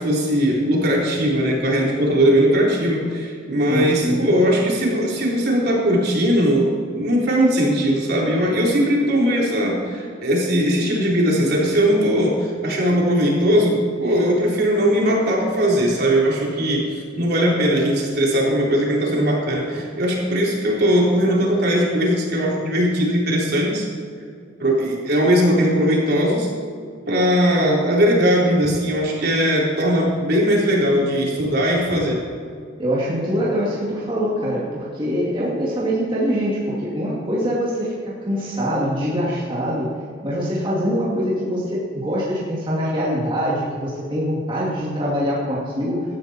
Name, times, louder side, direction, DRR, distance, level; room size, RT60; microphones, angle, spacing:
voice 1, 0.0-23.9 24.6-26.5 27.1-32.2, equal, 50° right, -3 dB, 3.9 m, -19 dB
voice 2, 3.7-4.3 32.8-38.0 38.3-39.9 40.2-46.0, equal, 25° right, -7 dB, 2.6 m, -23 dB
17.0 x 12.5 x 4.4 m, 2.3 s
head